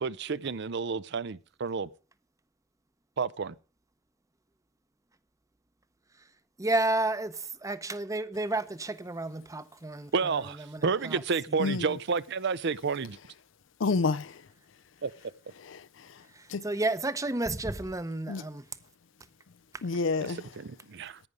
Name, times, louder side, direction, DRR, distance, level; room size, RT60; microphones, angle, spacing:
voice 1, 0.0-1.9 3.2-3.5 10.1-13.2 15.0-15.1 20.2-21.2, right 5 dB, 60° right, 0.6 m, -30 dB
voice 2, 6.6-11.2 11.5-11.6 16.3-18.7, right 2 dB, 15° right, 0.8 m, -32 dB
voice 3, 13.8-14.4 15.7-15.8 16.5-16.6 18.3-18.4 19.8-20.5, left 4 dB, 70° left, 0.5 m, -29 dB
11.0 x 9.5 x 5.0 m
head